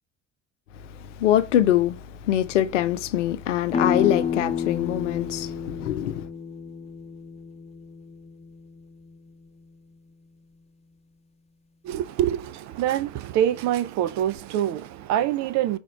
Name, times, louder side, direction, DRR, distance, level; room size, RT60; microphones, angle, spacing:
voice 1, 0.9-6.3, left 12 dB, 75° left, 0.5 m, -24 dB
sound 1, 3.7-9.3, left 7 dB, 15° left, 0.9 m, -30 dB
voice 2, 11.8-15.8, right 11 dB, 45° right, 0.6 m, -25 dB
4.9 x 3.5 x 5.6 m
figure-of-eight pair, 55°, 38 cm